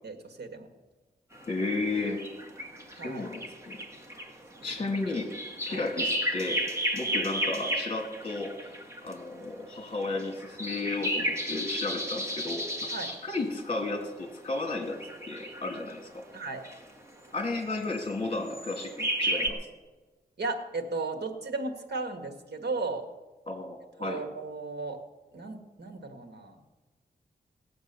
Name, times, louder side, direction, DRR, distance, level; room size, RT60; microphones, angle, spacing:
voice 1, 0.0-0.7 2.9-3.3 4.6-4.9 5.7-5.8 12.9-13.1 16.3-16.7 20.4-23.1 24.0-25.0 25.3-26.6, right 3 dB, 80° right, 4 dB, 1.7 m, -35 dB
sound 1, 1.3-9.1 10.0-13.2 14.6-15.9 16.4-16.8 17.8-18.1 18.5-19.5, equal, 15° right, 1.5 m, -33 dB
voice 2, 1.5-2.3 3.0-3.8 4.6-5.4 5.7-16.3 17.3-19.7 23.5-24.3, left 2 dB, 35° left, 3 dB, 2.2 m, -33 dB
17.5 x 7.8 x 6.7 m, 1.2 s
wide cardioid pair, 150°, 17 cm